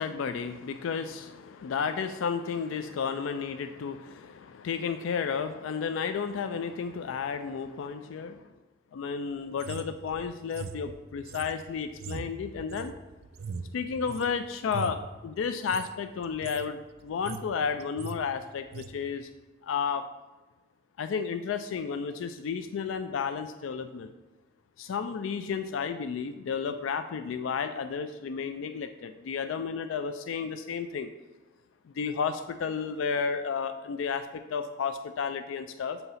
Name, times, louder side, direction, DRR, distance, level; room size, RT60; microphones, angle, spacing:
voice 1, 0.0-8.4 8.9-12.9 13.7-19.3 19.6-20.1 21.0-24.1 24.8-31.1 31.9-36.0, left 6 dB, 80° left, 9 dB, 0.3 m, -32 dB
sound 1, 9.6-14.3 14.6-15.1 15.6-15.9 16.2-16.7 17.0-17.5 17.8-18.2 18.7-18.9, right 5 dB, 55° right, 0.4 m, -40 dB
7.9 x 2.8 x 5.5 m, 1.2 s
head